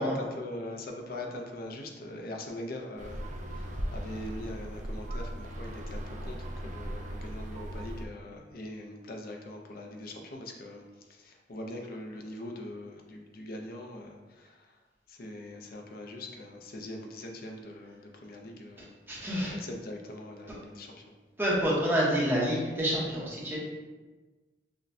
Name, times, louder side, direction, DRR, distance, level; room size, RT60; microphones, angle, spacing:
voice 1, 0.0-3.2 3.5-10.8 11.1-14.7 15.1-21.0, left 1 dB, 55° left, 2 dB, 0.5 m, -42 dB
sound 1, 3.0-8.0, equal, 45° right, 0.4 m, -38 dB
voice 2, 19.1-19.5 21.4-23.6, equal, 10° right, -6 dB, 0.8 m, -28 dB
6.1 x 2.2 x 2.6 m, 1.3 s
head